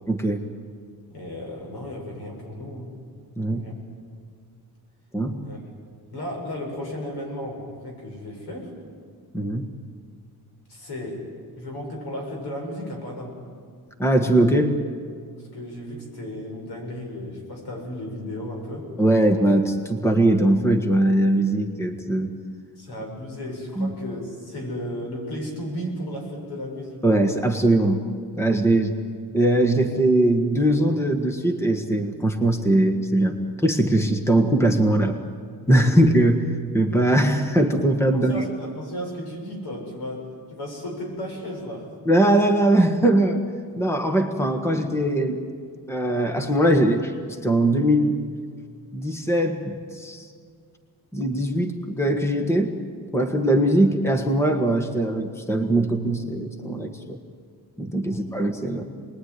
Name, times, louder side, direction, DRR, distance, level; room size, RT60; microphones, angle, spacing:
voice 1, 0.1-0.4 3.4-3.7 5.1-5.4 9.3-9.7 14.0-14.8 19.0-22.3 23.8-23.9 27.0-28.0 28.4-29.0 29.3-33.3 33.6-35.2 35.7-38.4 42.0-43.4 43.7-45.4 45.9-48.2 48.9-50.3 51.1-52.7 53.1-57.2 57.8-58.9, right 1 dB, 5° left, 5 dB, 1.5 m, -21 dB
voice 2, 1.1-2.9 3.4-3.8 5.4-5.6 6.1-8.7 10.7-11.3 11.6-13.4 15.4-18.9 22.8-27.1 38.1-41.9 58.1-58.3, left 1 dB, 85° left, 1 dB, 7.3 m, -34 dB
28.0 x 21.0 x 9.7 m, 2.1 s
wide cardioid pair, 170°, 38 cm